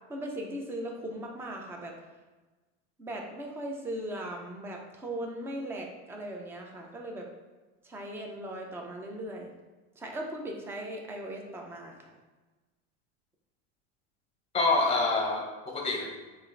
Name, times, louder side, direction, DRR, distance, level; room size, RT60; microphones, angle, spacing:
voice 1, 0.1-1.9 3.0-7.3 7.8-9.5 10.0-12.1, right 1 dB, 5° right, 1 dB, 0.3 m, -38 dB
voice 2, 14.5-16.1, left 3 dB, 15° left, 1 dB, 0.9 m, -27 dB
6.0 x 2.5 x 3.1 m, 1.2 s
supercardioid pair, 140°, 34 cm